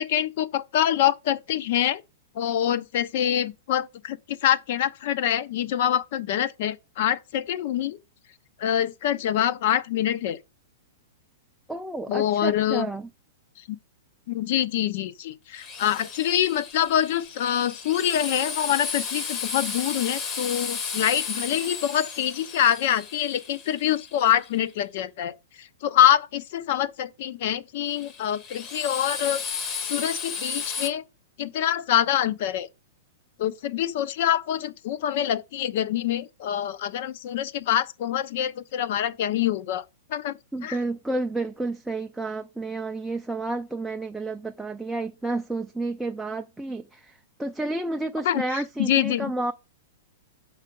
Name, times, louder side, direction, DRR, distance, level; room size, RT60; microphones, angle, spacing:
voice 1, 0.0-2.0 2.4-8.0 8.6-10.4 12.1-12.9 13.7-13.8 14.3-25.3 25.8-29.4 29.8-31.0 31.4-32.7 33.4-39.8 40.1-40.3 40.6-40.8 48.2-49.3, left 11 dB, 50° left, 0.6 m, -25 dB
voice 2, 11.7-13.1 40.5-49.5, right 2 dB, 5° right, 0.4 m, -31 dB
Drill, 15.6-24.5 27.9-30.9, left 5 dB, 25° left, 0.9 m, -34 dB
6.6 x 4.9 x 5.3 m
hypercardioid pair, 160°, 0 cm